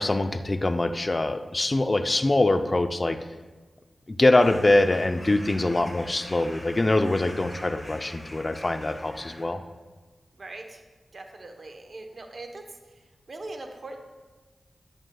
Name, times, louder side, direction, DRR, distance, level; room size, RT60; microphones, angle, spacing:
voice 1, 0.0-3.2 4.1-9.6, left 2 dB, 40° left, 9 dB, 0.6 m, -23 dB
sound 1, 4.4-9.4, equal, 20° left, 2.2 m, -43 dB
voice 2, 10.4-10.8 11.1-12.6 13.3-14.0, right 2 dB, 60° right, 4 dB, 1.0 m, -40 dB
9.1 x 9.0 x 2.4 m, 1.3 s
cardioid pair, 40°, 0 cm